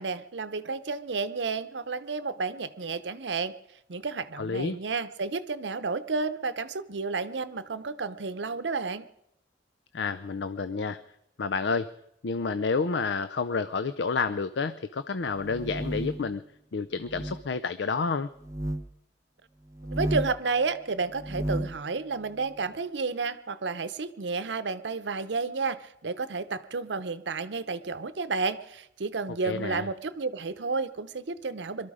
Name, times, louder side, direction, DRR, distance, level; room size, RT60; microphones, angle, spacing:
voice 1, 0.0-3.5 3.9-9.1 19.9-31.9, right 4 dB, 75° right, 13 dB, 0.8 m, -31 dB
voice 2, 4.4-4.8 9.9-11.0 11.4-11.9 12.2-16.4 16.7-18.3 29.4-29.9, left 4 dB, 75° left, 13 dB, 0.5 m, -29 dB
sound 1, 15.3-16.3 17.0-17.4 18.4-18.8 19.7-20.4 21.1-21.8, right 1 dB, 20° right, 0.8 m, -33 dB
22.5 x 13.0 x 4.9 m, 0.82 s
head